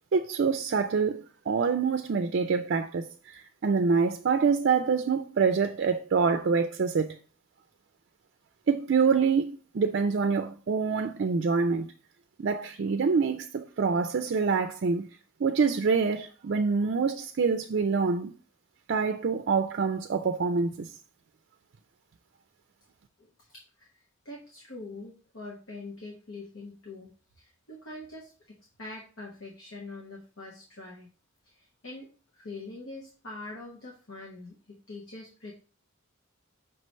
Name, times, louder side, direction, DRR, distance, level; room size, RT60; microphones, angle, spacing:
voice 1, 0.1-7.2 8.7-11.9 12.4-15.1 15.4-18.3 18.9-20.9, right 5 dB, 55° right, 0.4 m, -26 dB
voice 2, 23.2-31.1 31.4-32.1 32.3-35.5, left 2 dB, 75° left, 1.3 m, -44 dB
5.9 x 3.2 x 5.3 m
head